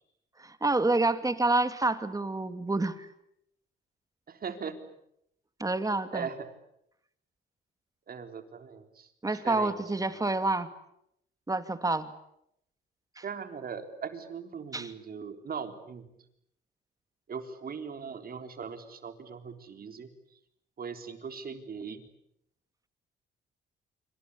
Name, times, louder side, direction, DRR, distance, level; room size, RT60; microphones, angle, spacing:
voice 1, 0.4-3.1 5.6-6.3 9.2-10.7 11.5-12.1 13.2-13.3 14.7-14.9, right 2 dB, 15° right, 10 dB, 2.5 m, -28 dB
voice 2, 4.3-4.8 6.1-6.5 8.1-9.8 13.2-16.1 17.3-20.1 20.8-22.0, right 6 dB, 50° right, 7 dB, 3.8 m, -39 dB
26.5 x 25.5 x 8.5 m, 0.78 s
cardioid pair, 90°, 20 cm